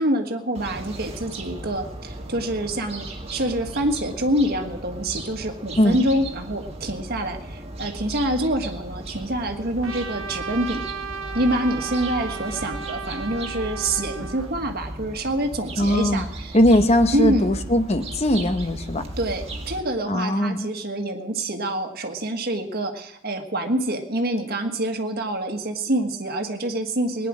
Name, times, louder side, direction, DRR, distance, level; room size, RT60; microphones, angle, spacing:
voice 1, 0.0-10.8 11.3-16.6 17.1-17.6 19.2-27.3, right 1 dB, 50° right, 5 dB, 1.5 m, -26 dB
sound 1, 0.6-19.8, right 1 dB, 30° right, 1.7 m, -36 dB
Trumpet, 9.8-14.5, right 5 dB, 90° right, 1.0 m, -34 dB
voice 2, 15.8-16.2 16.5-19.0 20.1-20.7, left 1 dB, 30° left, 9 dB, 0.9 m, -20 dB
18.0 x 10.0 x 6.3 m, 0.89 s
head